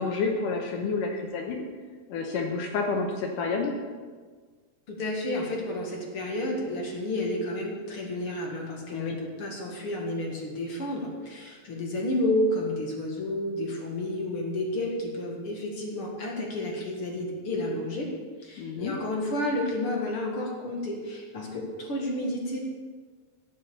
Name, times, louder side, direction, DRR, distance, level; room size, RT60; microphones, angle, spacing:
voice 1, 0.0-1.7 2.1-3.7 8.9-9.2 18.6-19.0, left 4 dB, 75° left, 2 dB, 2.5 m, -29 dB
voice 2, 4.9-18.1 18.4-22.6, left 1 dB, 45° left, -1 dB, 2.3 m, -31 dB
11.0 x 9.8 x 7.1 m, 1.5 s
omnidirectional pair, 4.0 m